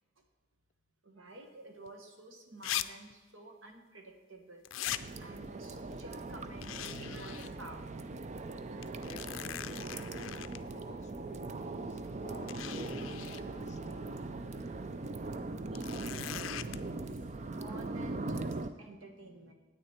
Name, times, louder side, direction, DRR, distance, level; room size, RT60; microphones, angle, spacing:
voice 1, 1.0-4.7 5.2-8.1 14.5-16.1 16.8-17.0 17.5-19.5, right 2 dB, 85° right, 4 dB, 1.4 m, -51 dB
sound 1, 1.9-2.0 2.6-2.8 3.1-3.2 4.6-5.0 6.6-7.5 7.9-8.0 8.8-10.6 11.7-11.8 12.5-13.4 15.7-16.8, left 12 dB, 85° left, 0.4 m, -40 dB
sound 2, 4.8-18.7, right 2 dB, 35° right, 0.4 m, -40 dB
voice 2, 9.1-14.1, left 3 dB, 35° left, 9 dB, 0.5 m, -55 dB
sound 3, 10.5-15.6, left 1 dB, 20° left, 2.9 m, -56 dB
9.7 x 8.9 x 4.3 m, 1.4 s
head